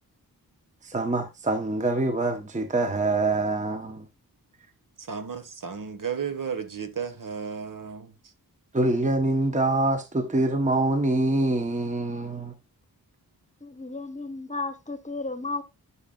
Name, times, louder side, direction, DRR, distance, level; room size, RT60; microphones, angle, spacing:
voice 1, 0.8-4.1 8.7-12.5, right 2 dB, 20° right, 0.9 m, -25 dB
voice 2, 5.0-8.1, right 7 dB, 60° right, 1.4 m, -33 dB
voice 3, 13.6-15.6, left 3 dB, 20° left, 1.1 m, -33 dB
11.0 x 6.9 x 2.4 m
wide cardioid pair, 125°, 38 cm